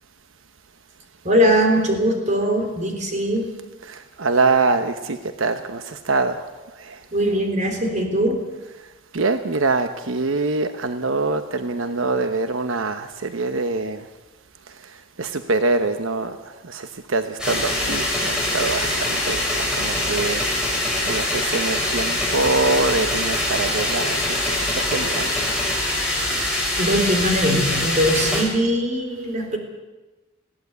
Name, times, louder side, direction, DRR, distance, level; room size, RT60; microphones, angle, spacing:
voice 1, 1.2-3.5 7.1-8.4 26.1-26.4 26.8-29.6, equal, 40° right, 3.7 m, -21 dB
voice 2, 3.8-6.5 6.8-7.0 9.1-14.1 15.2-16.4 16.6-20.5 21.1-25.3, right 3 dB, 90° right, 1.0 m, -24 dB
sound 1, 17.4-28.4, left 1 dB, 5° right, 5.9 m, -23 dB
20.5 x 16.0 x 8.2 m
head